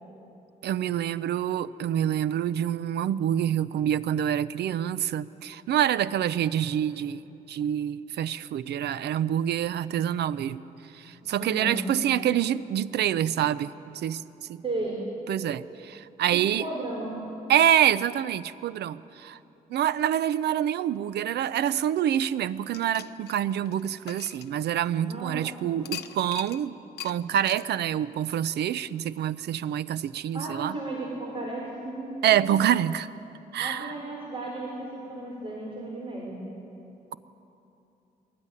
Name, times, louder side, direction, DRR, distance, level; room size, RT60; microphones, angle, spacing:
voice 1, 0.6-10.6 10.9-14.2 14.5-14.6 15.3-16.7 17.5-19.4 19.7-26.8 27.0-30.8 32.2-33.1 33.5-33.9, right 10 dB, 90° right, 17 dB, 0.6 m, -26 dB
voice 2, 11.4-11.9 14.6-15.0 16.3-17.2 25.1-25.6 30.3-32.1 33.6-36.4, right 2 dB, 35° right, -2 dB, 3.8 m, -34 dB
sound 1, 22.7-25.1 25.8-26.6 27.0-27.1 27.4-27.7, left 11 dB, 85° left, 0.9 m, -41 dB
21.5 x 18.5 x 9.7 m, 2.9 s
cardioid pair, 120°, 17 cm